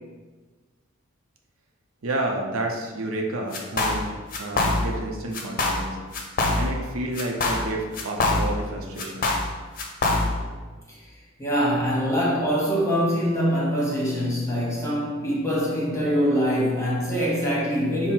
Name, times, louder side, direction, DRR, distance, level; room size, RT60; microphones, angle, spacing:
voice 1, 2.0-6.0 6.6-9.3, right 2 dB, 80° right, 1 dB, 0.6 m, -30 dB
sound 1, 3.5-4.0 4.3-5.0 5.3-5.9 6.1-6.9 7.2-8.7 9.0-10.5, left 2 dB, 45° left, 0.6 m, -24 dB
voice 2, 11.4-18.1, equal, 15° left, -5 dB, 1.1 m, -24 dB
5.5 x 2.1 x 4.4 m, 1.3 s
head